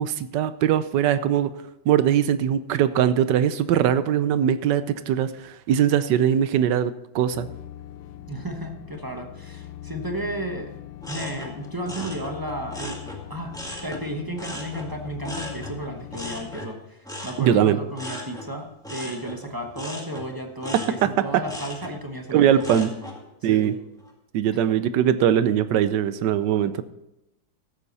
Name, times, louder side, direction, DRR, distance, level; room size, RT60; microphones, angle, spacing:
voice 1, 0.0-1.5 1.9-7.5 17.4-17.8 21.0-21.1 22.3-22.9 23.4-23.7 24.3-26.8, right 10 dB, 75° right, 13 dB, 1.2 m, -21 dB
sound 1, 7.3-16.6, left 12 dB, 90° left, 1.4 m, -41 dB
voice 2, 8.3-10.7 11.1-13.0 13.3-13.6 13.8-22.9 23.4-23.7, right 1 dB, 15° right, 3 dB, 0.7 m, -33 dB
sound 2, 11.0-14.0 14.4-23.2 23.6-24.1, left 1 dB, ahead, 1.8 m, -38 dB
14.0 x 8.4 x 4.1 m, 0.91 s
omnidirectional pair, 2.1 m